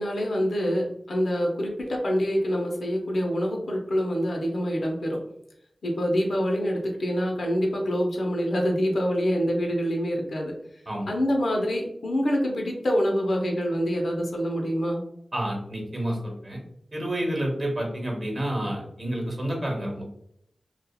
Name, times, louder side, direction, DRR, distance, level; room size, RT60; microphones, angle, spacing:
voice 1, 0.0-5.2 5.8-10.5 11.1-15.0, equal, 75° left, 0 dB, 0.7 m, -26 dB
voice 2, 15.3-16.6 16.9-20.0, right 1 dB, 35° right, -1 dB, 1.1 m, -29 dB
2.8 x 2.4 x 2.3 m, 0.73 s
wide cardioid pair, 60°, 0 cm